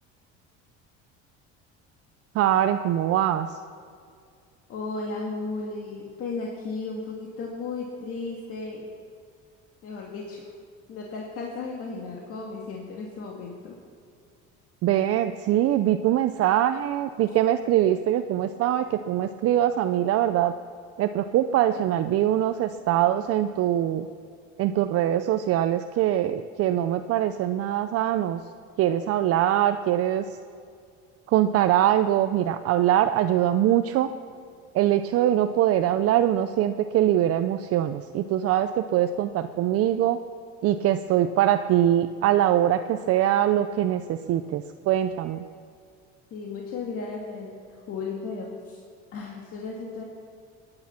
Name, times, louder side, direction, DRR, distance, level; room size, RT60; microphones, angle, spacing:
voice 1, 2.4-3.5 14.8-20.5 21.0-24.1 24.6-28.4 28.8-30.2 31.3-34.1 34.7-40.2 40.6-45.4, right 12 dB, 55° right, 9 dB, 0.6 m, -23 dB
voice 2, 4.7-8.9 9.8-10.5 10.9-13.8 46.3-48.8 49.1-50.0, left 3 dB, 50° left, -1 dB, 2.0 m, -35 dB
23.0 x 9.8 x 5.8 m, 2.3 s
cardioid pair, 135°, 30 cm